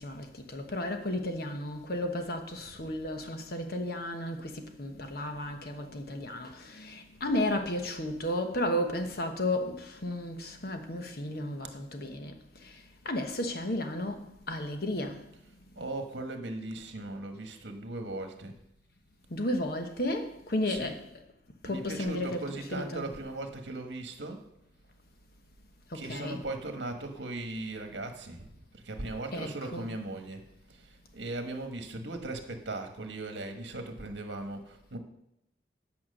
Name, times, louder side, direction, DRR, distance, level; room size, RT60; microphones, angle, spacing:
voice 1, 0.0-12.3 12.6-12.8 13.0-15.2 19.3-21.0 21.6-23.1 25.9-26.4 29.3-29.9, left 1 dB, 55° left, 1.1 m, -33 dB
voice 2, 15.7-18.5 20.7-21.0 21.6-24.4 25.9-30.4 30.7-35.0, right 2 dB, 75° right, 1.3 m, -38 dB
8.8 x 6.0 x 6.5 m
head